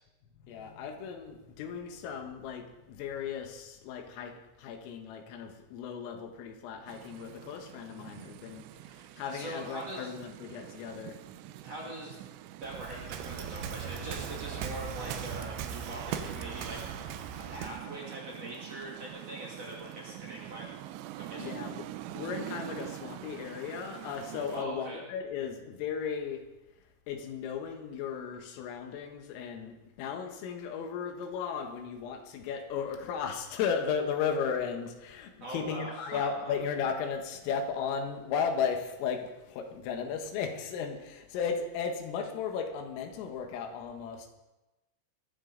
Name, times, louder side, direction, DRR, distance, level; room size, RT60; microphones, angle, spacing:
voice 1, 0.5-11.2 21.4-21.9 22.2-26.4 27.1-44.3, left 6 dB, 80° left, 5 dB, 4.0 m, -35 dB
sound 1, 6.9-24.7, right 13 dB, 90° right, 2.5 m, -45 dB
voice 2, 9.2-10.1 11.6-12.2 12.6-16.8 17.5-20.7 21.2-21.5 24.5-25.0 35.4-36.5, right 1 dB, 40° right, -3 dB, 2.7 m, -42 dB
Waves surf, 12.6-17.9, right 8 dB, 75° right, 3.0 m, -38 dB
20.5 x 14.5 x 4.0 m, 1.0 s
omnidirectional pair, 5.9 m